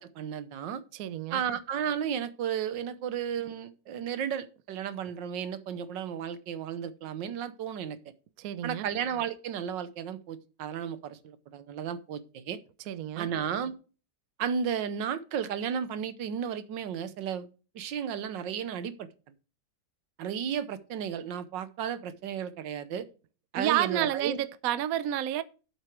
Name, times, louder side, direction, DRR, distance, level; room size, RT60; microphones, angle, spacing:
voice 1, 0.0-0.8 1.3-8.0 8.6-12.6 13.2-13.7 14.4-17.5 17.7-19.1 20.2-23.1 23.5-24.4, right 8 dB, 85° right, 1.6 m, -33 dB
voice 2, 0.9-1.4 8.4-8.9 12.9-13.3 23.5-25.4, right 12 dB, 65° right, 1.0 m, -30 dB
7.9 x 7.7 x 4.7 m
omnidirectional pair, 1.9 m